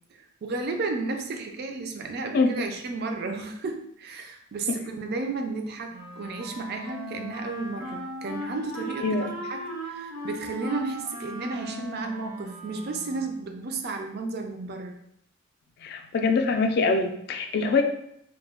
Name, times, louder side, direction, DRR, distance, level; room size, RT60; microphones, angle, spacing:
voice 1, 0.2-9.2 9.4-14.9, right 3 dB, 55° right, 4 dB, 0.4 m, -33 dB
Wind instrument woodwind instrument, 5.9-13.4, equal, 85° right, 0.9 m, -38 dB
voice 2, 9.0-9.3 15.8-17.8, left 4 dB, 55° left, 5 dB, 0.3 m, -24 dB
2.2 x 2.2 x 3.4 m, 0.73 s
head